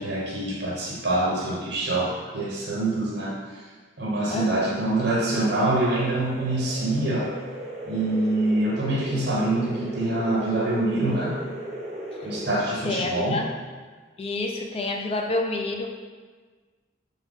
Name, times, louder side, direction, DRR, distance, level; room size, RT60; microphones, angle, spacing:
voice 1, 0.0-3.4 4.0-7.3 7.8-11.4 12.2-13.4, right 2 dB, 60° right, -4 dB, 0.7 m, -25 dB
sound 1, 4.4-12.5, right 1 dB, ahead, 0.8 m, -37 dB
voice 2, 12.8-13.5 14.2-15.9, left 2 dB, 30° left, 2 dB, 0.3 m, -28 dB
4.8 x 2.2 x 3.5 m, 1.4 s
head